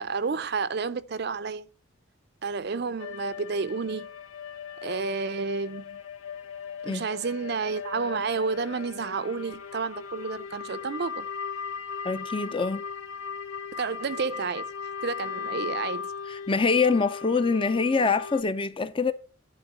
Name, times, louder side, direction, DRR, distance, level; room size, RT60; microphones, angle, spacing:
voice 1, 0.0-1.7 2.4-4.1 4.8-6.0 6.8-11.3 13.8-14.6 15.0-16.1, right 4 dB, 50° right, 0.5 m, -30 dB
sound 1, 3.0-18.4, left 6 dB, 90° left, 0.8 m, -38 dB
voice 2, 12.0-12.8 16.3-19.1, left 4 dB, 25° left, 0.5 m, -25 dB
11.0 x 3.9 x 6.6 m
head